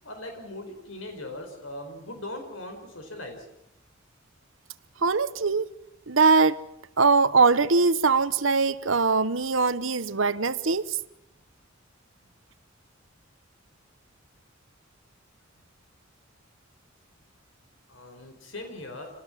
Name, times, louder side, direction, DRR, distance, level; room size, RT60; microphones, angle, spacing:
voice 1, 0.0-3.5 12.2-12.3 17.9-19.1, left 1 dB, 85° left, 4.8 m, -40 dB
voice 2, 5.0-5.7 6.1-6.6 7.0-11.0, right 4 dB, 80° right, 1.1 m, -22 dB
27.0 x 19.0 x 7.4 m
head